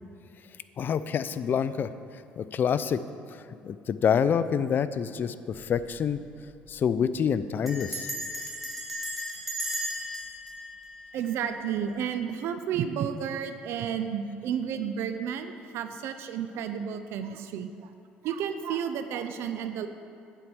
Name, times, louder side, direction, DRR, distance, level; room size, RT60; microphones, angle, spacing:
voice 1, 0.8-1.9 2.4-3.0 3.6-6.2 6.7-8.1, left 7 dB, 45° left, 14 dB, 0.4 m, -27 dB
Bell, 5.5-5.9 6.2-6.3 6.5-6.9 7.7-11.7, equal, 5° right, 2.4 m, -36 dB
voice 2, 11.1-17.7 18.2-19.9, right 8 dB, 70° right, 8 dB, 0.5 m, -31 dB
8.7 x 4.6 x 7.2 m, 2.5 s
hypercardioid pair, 65°, 5 cm